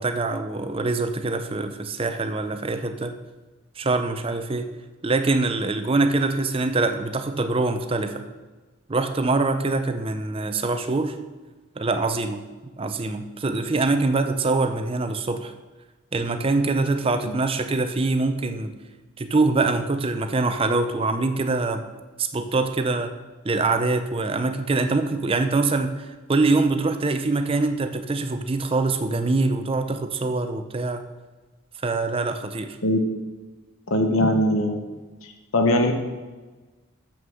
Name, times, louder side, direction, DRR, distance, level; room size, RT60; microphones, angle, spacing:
voice 1, 0.0-3.1 3.8-4.7 5.0-8.2 8.9-11.2 11.8-12.4 12.8-15.5 16.1-18.7 19.2-21.8 22.2-23.1 23.4-31.0 31.8-32.8, right 3 dB, 25° right, 8 dB, 0.5 m, -24 dB
voice 2, 33.9-34.8 35.2-35.9, left 1 dB, 70° left, 5 dB, 0.9 m, -21 dB
7.2 x 6.5 x 6.3 m, 1.3 s
head